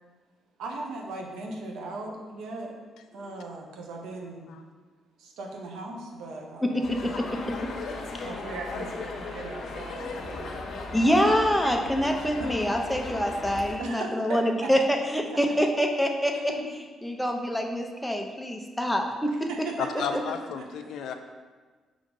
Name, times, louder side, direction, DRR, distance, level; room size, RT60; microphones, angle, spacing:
voice 1, 0.6-2.8 3.1-4.5 5.2-6.9 8.2-11.0 12.4-12.5 13.8-14.8 15.4-15.5 16.3-16.7 17.3-17.6 19.3-19.9 20.8-21.2, right 2 dB, 85° right, 1 dB, 1.0 m, -38 dB
voice 2, 6.6-7.7 8.1-8.3 10.9-16.3 17.0-19.5, equal, 5° left, 2 dB, 0.8 m, -26 dB
sound 1, 6.8-13.8, left 3 dB, 60° left, 0.9 m, -37 dB
voice 3, 19.8-21.1, left 7 dB, 75° left, 7 dB, 0.5 m, -33 dB
5.2 x 3.7 x 5.3 m, 1.4 s
cardioid pair, 90°, 0 cm